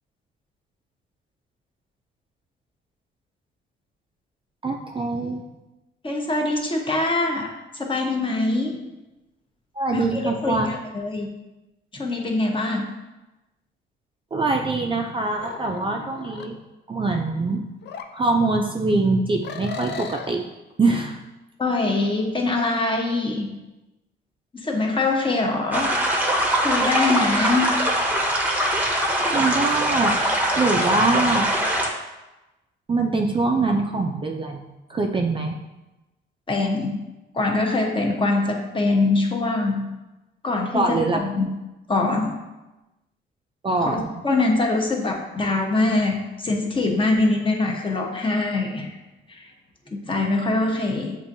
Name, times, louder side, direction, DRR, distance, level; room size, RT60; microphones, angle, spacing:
voice 1, 4.6-5.4 9.7-10.7 14.3-16.6 16.9-17.7 18.1-20.4 20.8-21.3 29.3-30.2 30.5-31.5 32.9-35.6 40.7-41.2 43.6-44.2, right 3 dB, 25° right, 2 dB, 0.4 m, -23 dB
voice 2, 6.0-8.8 9.9-11.3 11.9-12.9 21.6-23.6 24.5-25.9 26.6-27.8 36.5-37.0 37.3-39.9 40.4-41.5 41.9-42.4 43.9-49.0 49.3-49.4 49.9-51.2, left 2 dB, 25° left, 1 dB, 0.8 m, -23 dB
sound 1, 15.4-16.5 17.8-18.1 19.4-20.3, left 6 dB, 60° left, 0.4 m, -36 dB
sound 2, 25.7-31.9, right 1 dB, 10° right, 0.8 m, -22 dB
7.0 x 2.6 x 2.7 m, 1.0 s
cardioid pair, 90°, 20 cm